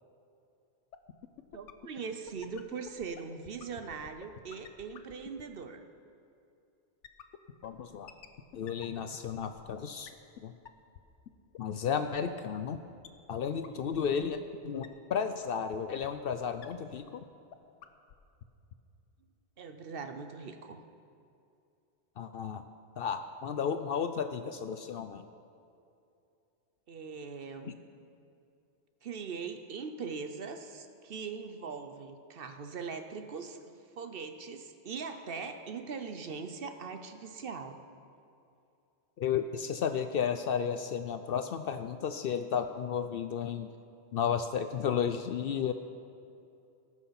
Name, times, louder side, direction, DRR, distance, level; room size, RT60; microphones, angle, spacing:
sound 1, 0.9-5.6 7.0-9.8 10.1-10.2 10.4-10.5 10.6-10.7 10.9-11.0 11.3-11.4 11.5-11.6 11.8-11.9 12.1-12.2 12.4-12.5 12.7-12.8 13.0-13.1 13.3-13.4 13.6-13.7 13.9-14.3 14.5-14.6 14.8-14.9 15.1-15.2 15.4-15.5 15.7-15.8 16.0-16.1 16.3-16.4 16.6-16.7 16.9-17.0 17.2-17.3 17.5-17.6 17.8-18.1 18.4-18.5 18.7-18.8, left 10 dB, 85° left, 1.0 m, -48 dB
voice 1, 1.5-5.8 13.6-14.2 19.6-20.8 26.9-27.8 29.0-33.6 34.0-37.8, right 5 dB, 55° right, 8 dB, 0.8 m, -41 dB
voice 2, 7.6-8.1 8.5-10.1 10.4-10.5 11.6-12.8 13.3-14.4 14.6-17.2 22.2-22.6 23.0-25.2 39.2-43.7 44.1-45.7, left 7 dB, 60° left, 9 dB, 0.6 m, -33 dB
18.5 x 6.3 x 5.7 m, 2.6 s
omnidirectional pair, 1.2 m